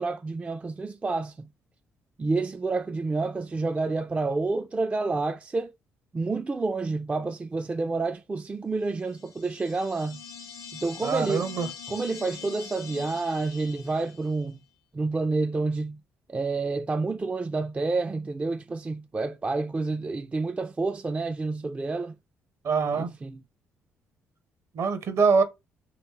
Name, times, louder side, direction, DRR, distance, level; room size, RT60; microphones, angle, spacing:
voice 1, 0.0-1.5 2.2-5.7 6.1-10.2 10.7-11.5 11.9-14.6 14.9-16.0 16.3-22.1 22.9-23.4, right 3 dB, 20° right, 0.3 m, -29 dB
sound 1, 9.0-14.4, left 7 dB, 60° left, 0.5 m, -43 dB
voice 2, 11.0-11.7 22.6-23.1 24.7-25.4, right 5 dB, 55° right, 0.7 m, -24 dB
3.1 x 2.9 x 2.8 m
hypercardioid pair, 45°, 6 cm